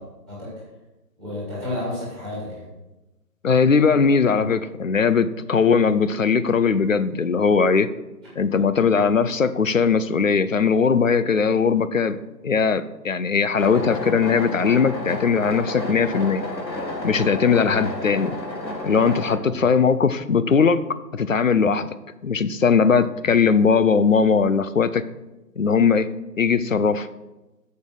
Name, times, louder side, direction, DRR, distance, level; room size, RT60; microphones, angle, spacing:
voice 1, 1.2-2.7 8.5-8.6 17.6-17.9 19.4-19.6 23.2-23.3, left 1 dB, ahead, -7 dB, 2.2 m, -32 dB
voice 2, 3.4-7.9 8.4-12.2 12.4-16.4 17.0-18.4 18.8-20.8 21.1-21.9 22.2-25.0 25.6-26.1 26.4-27.1, left 5 dB, 50° left, 13 dB, 0.6 m, -19 dB
sound 1, 13.6-19.4, left 1 dB, 90° left, 2.0 m, -31 dB
7.0 x 6.6 x 6.2 m, 1.0 s
figure-of-eight pair, 160°, 50 cm